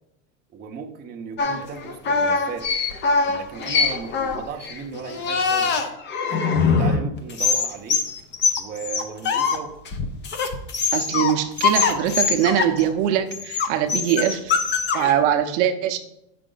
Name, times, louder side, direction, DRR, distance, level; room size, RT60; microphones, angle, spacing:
voice 1, 0.5-2.7 3.2-5.8 6.3-8.0 8.6-9.7, right 6 dB, 20° right, 2 dB, 0.7 m, -35 dB
sound 1, 1.4-7.0 7.3-9.6 9.8-11.3 11.6-12.9 13.3-15.1, left 5 dB, 25° left, 0.7 m, -23 dB
voice 2, 10.9-14.5 14.9-16.0, right 10 dB, 55° right, 6 dB, 0.7 m, -22 dB
7.7 x 5.1 x 3.9 m, 0.84 s
supercardioid pair, 135°, 43 cm